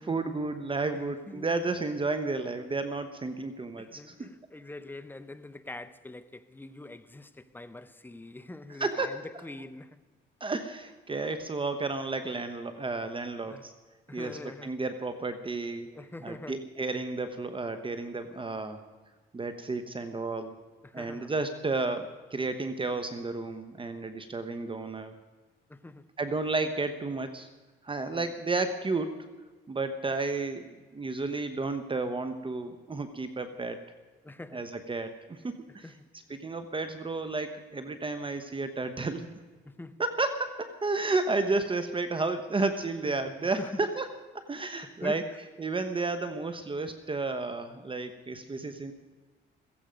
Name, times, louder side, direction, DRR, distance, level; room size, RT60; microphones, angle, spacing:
voice 1, 0.0-4.3 8.8-9.1 10.4-13.7 14.1-15.9 16.2-18.8 19.3-20.6 20.9-25.1 26.2-27.5 27.8-29.3 29.7-30.7 30.9-33.8 34.5-35.9 36.3-39.3 40.0-44.1 44.3-45.2 45.6-48.9, right 3 dB, 25° right, 1.0 m, -32 dB
voice 2, 0.9-1.5 3.8-10.0 13.5-13.7 14.1-14.7 15.9-16.7 20.8-21.3 25.7-26.1 28.1-28.3 34.2-34.7 35.7-36.4 39.6-40.0 43.0-43.1 43.4-43.9 44.8-45.4, left 2 dB, 10° left, 0.8 m, -44 dB
15.5 x 15.5 x 5.2 m
cardioid pair, 90°, 20 cm